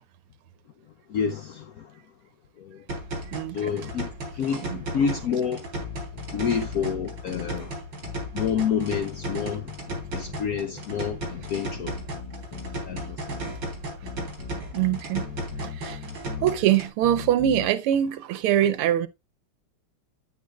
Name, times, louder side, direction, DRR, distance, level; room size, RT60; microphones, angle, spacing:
voice 1, 1.1-2.0 2.6-2.8 3.5-5.7 6.3-7.7 8.3-9.7 10.1-12.0 12.8-13.4, left 7 dB, 80° left, 0.8 m, -29 dB
sound 1, 2.9-16.9, right 1 dB, 60° right, 4.2 m, -35 dB
voice 2, 3.3-3.7 4.6-4.8 14.7-15.3 15.6-16.0 16.4-19.1, right 11 dB, 90° right, 1.7 m, -23 dB
sound 2, 5.8-7.6 8.0-10.6 11.0-13.6 14.0-16.6 17.0-17.7, left 7 dB, 50° left, 1.9 m, -39 dB
9.5 x 9.3 x 2.3 m
omnidirectional pair, 2.4 m